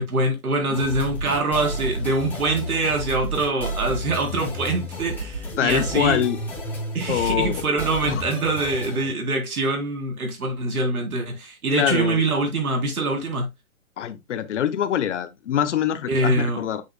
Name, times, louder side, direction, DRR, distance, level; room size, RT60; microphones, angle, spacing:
voice 1, 0.0-6.2 6.9-13.5 16.1-16.6, right 2 dB, 90° right, 4.0 m, -24 dB
sound 1, 0.7-9.1, right 1 dB, 5° left, 2.5 m, -31 dB
voice 2, 5.6-6.4 7.1-7.6 8.0-8.2 11.7-12.2 14.0-16.8, left 10 dB, 55° left, 1.1 m, -24 dB
8.4 x 6.2 x 2.3 m
hypercardioid pair, 155°, 42 cm